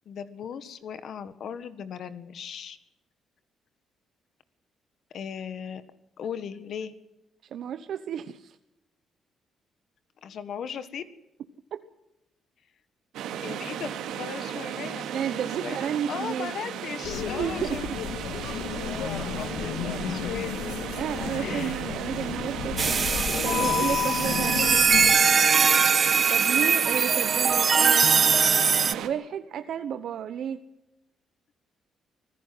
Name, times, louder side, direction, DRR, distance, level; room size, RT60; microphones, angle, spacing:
voice 1, 0.0-2.8 5.1-5.8 6.2-6.9 10.2-11.0 13.4-17.8 18.8-20.6 21.4-21.7 26.5-26.8, left 7 dB, 65° left, 12 dB, 1.6 m, -37 dB
voice 2, 7.5-8.6 11.7-11.8 15.1-16.5 17.4-18.0 21.0-24.8 26.3-30.6, right 9 dB, 70° right, 9 dB, 1.0 m, -32 dB
sound 1, 13.1-29.1, right 9 dB, 85° right, 2.6 m, -35 dB
sound 2, 17.0-25.1, left 8 dB, 85° left, 2.1 m, -32 dB
sound 3, 22.8-28.9, right 6 dB, 45° right, 0.7 m, -21 dB
25.0 x 15.0 x 7.8 m, 0.90 s
cardioid pair, 90°, 0 cm